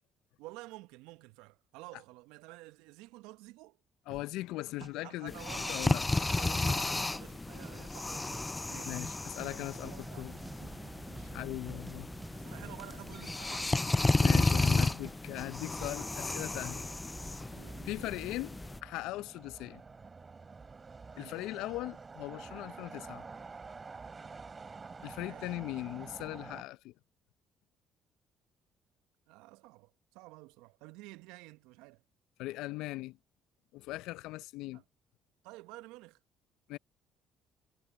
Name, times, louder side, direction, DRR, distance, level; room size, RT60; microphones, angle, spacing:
voice 1, 0.4-3.8 4.8-5.8 6.1-9.0 9.8-11.4 12.3-13.7 17.5-18.1 21.1-21.3 25.2-25.6 29.3-32.0 34.7-34.8 35.4-36.2, right 21 dB, 75° right, 1.0 m, -51 dB
voice 2, 4.1-6.1 8.9-10.4 11.3-12.1 14.2-16.9 17.8-19.8 21.2-23.2 25.0-26.9 32.4-33.2 33.7-34.8 36.7-36.8, left 18 dB, 75° left, 0.8 m, -39 dB
sound 1, 4.1-4.3 4.8-4.9 5.4-5.7 6.0-6.7 6.9-7.7 8.0-8.1 8.3-9.1 9.4-9.5 9.7-10.0 10.3-10.6 11.1-11.4 11.7-12.0 12.2-13.0 13.3-13.4 14.0-14.2 14.5-14.8 15.0-15.2, right 2 dB, 15° right, 0.8 m, -50 dB
sound 2, 5.3-18.8, left 2 dB, 20° left, 0.5 m, -33 dB
sound 3, 9.5-26.6, right 4 dB, 35° right, 3.0 m, -49 dB
hypercardioid pair, 55°, 0 cm